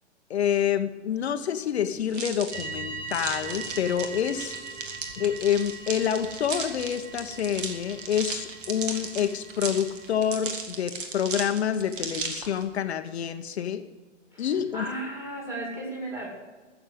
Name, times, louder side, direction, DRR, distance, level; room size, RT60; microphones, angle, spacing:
voice 1, 0.3-4.6 5.2-13.9 14.4-14.9, left 9 dB, 60° left, 7 dB, 0.9 m, -27 dB
sound 1, 2.1-12.6, right 5 dB, 45° right, 2.0 m, -36 dB
sound 2, 2.5-10.1, right 4 dB, 65° right, 5.1 m, -41 dB
voice 2, 14.3-16.3, right 1 dB, 5° right, -2 dB, 2.4 m, -35 dB
14.0 x 7.1 x 7.9 m, 1.3 s
hypercardioid pair, 165°, 36 cm